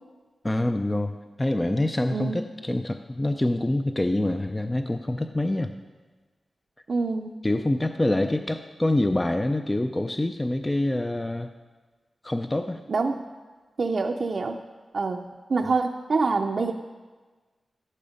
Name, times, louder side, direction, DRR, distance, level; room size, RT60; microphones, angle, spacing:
voice 1, 0.4-5.7 7.4-11.5 12.2-12.8, left 1 dB, 15° left, 7 dB, 0.4 m, -26 dB
voice 2, 6.9-7.3 12.9-13.2 13.8-14.6 14.9-15.2 15.5-16.7, right 4 dB, 55° right, 1 dB, 0.5 m, -25 dB
13.5 x 11.0 x 5.1 m, 1.3 s
wide cardioid pair, 145°, 0 cm